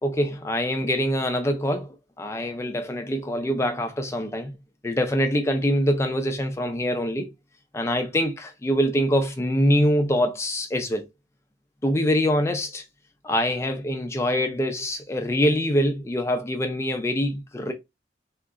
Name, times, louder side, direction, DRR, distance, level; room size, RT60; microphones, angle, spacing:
voice 1, 0.0-4.5 4.8-7.3 7.7-11.0 11.8-12.8 13.2-17.7, equal, 15° left, 0.4 m, -24 dB
3.6 x 2.8 x 2.4 m
head